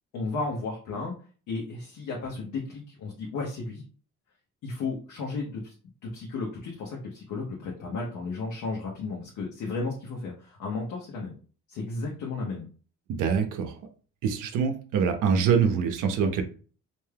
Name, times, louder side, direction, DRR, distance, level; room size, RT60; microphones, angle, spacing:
voice 1, 0.1-1.1 1.5-3.8 4.6-5.7 6.0-11.4 11.7-12.7, left 3 dB, 80° left, -2 dB, 0.8 m, -34 dB
voice 2, 13.1-13.8 14.2-16.4, right 6 dB, 90° right, 5 dB, 0.6 m, -24 dB
2.6 x 2.3 x 3.3 m, 0.40 s
cardioid pair, 90°, 30 cm